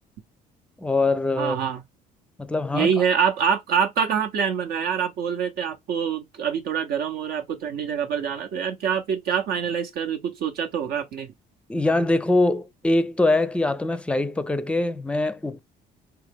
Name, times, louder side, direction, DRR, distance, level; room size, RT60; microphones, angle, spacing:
voice 1, 0.8-1.6 2.4-2.9 11.7-15.6, left 2 dB, 5° left, 0.5 m, -23 dB
voice 2, 1.4-1.8 2.7-11.3, right 7 dB, 70° right, 0.7 m, -25 dB
3.8 x 2.9 x 3.5 m
cardioid pair, 110°, 17 cm